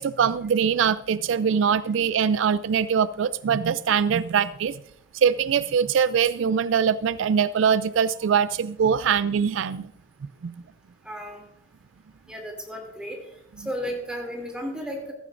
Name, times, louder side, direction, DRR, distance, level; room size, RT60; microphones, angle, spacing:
voice 1, 0.0-4.7 5.1-9.9 10.4-10.5, right 7 dB, 75° right, 16 dB, 0.4 m, -22 dB
voice 2, 11.0-11.4 12.3-13.2 13.6-15.1, equal, 5° right, 1 dB, 2.7 m, -33 dB
15.5 x 14.0 x 2.5 m, 0.76 s
head